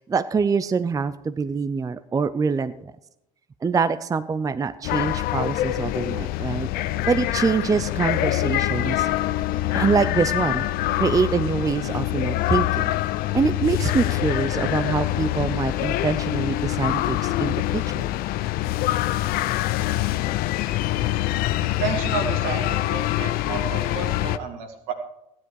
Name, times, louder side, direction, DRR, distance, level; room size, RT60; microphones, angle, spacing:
voice 1, 0.0-2.7 3.6-6.7 7.1-9.1 9.7-10.7 11.0-12.9 13.3-17.8, right 5 dB, 20° right, 13 dB, 0.5 m, -24 dB
sound 1, 4.8-24.4, left 15 dB, 60° left, 0.5 m, -25 dB
voice 2, 21.6-24.9, right 5 dB, 75° right, 4 dB, 2.1 m, -31 dB
14.5 x 10.0 x 4.8 m, 0.83 s
hypercardioid pair, 75°, 17 cm